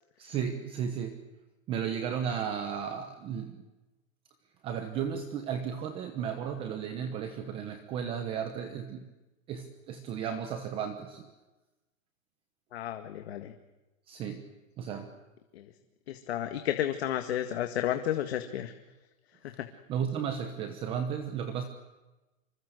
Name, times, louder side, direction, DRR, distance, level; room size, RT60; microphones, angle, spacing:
voice 1, 0.2-1.2 1.7-3.6 4.6-9.1 9.5-11.3 14.1-14.4 14.8-15.1 19.9-21.6, right 8 dB, 15° right, 8 dB, 1.0 m, -34 dB
voice 2, 12.7-13.5 15.5-15.7 16.1-18.7 19.4-19.7, left 11 dB, 50° left, 7 dB, 1.9 m, -32 dB
26.5 x 24.5 x 8.1 m, 1.1 s
hypercardioid pair, 170°, 40 cm